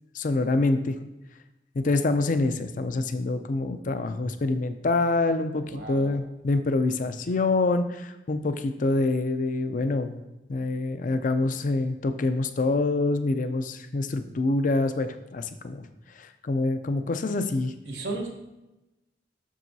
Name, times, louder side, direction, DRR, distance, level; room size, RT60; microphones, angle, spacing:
voice 1, 0.1-1.0 1.7-10.2 10.5-15.9 16.2-17.7, left 2 dB, 50° left, 9 dB, 0.5 m, -26 dB
voice 2, 5.7-6.2 17.9-18.3, right 2 dB, 70° right, 2 dB, 1.2 m, -34 dB
7.5 x 6.7 x 2.7 m, 0.98 s
head